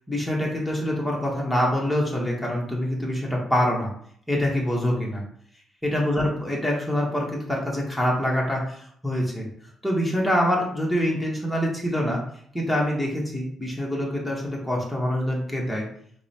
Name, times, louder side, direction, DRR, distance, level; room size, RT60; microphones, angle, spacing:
voice 1, 0.1-3.9 4.3-5.2 5.8-9.5 9.8-12.2 12.5-15.9, equal, ahead, -3 dB, 1.0 m, -25 dB
4.7 x 2.1 x 2.8 m, 0.63 s
cardioid pair, 90°, 0 cm